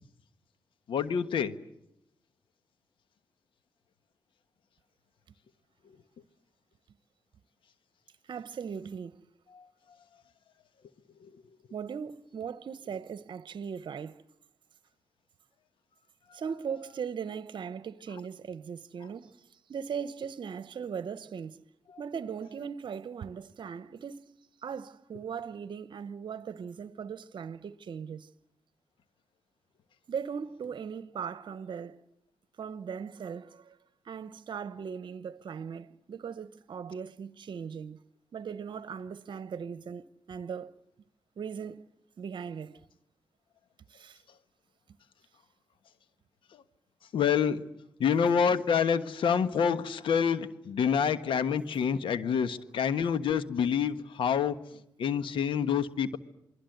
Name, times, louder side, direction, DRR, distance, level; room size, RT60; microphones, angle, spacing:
voice 1, 0.9-1.6 9.5-9.6 11.2-11.3 46.5-46.6 47.1-47.6 48.0-54.6 55.0-56.2, left 7 dB, 75° left, 1.3 m, -27 dB
voice 2, 8.3-9.2 11.7-14.2 16.3-21.6 22.0-24.3 24.6-28.3 30.1-32.0 32.6-33.8 34.0-38.0 38.3-40.7 41.4-41.8 42.2-42.8 43.9-44.2, right 7 dB, 65° right, 0.9 m, -39 dB
28.0 x 21.5 x 7.9 m
supercardioid pair, 50°, 9 cm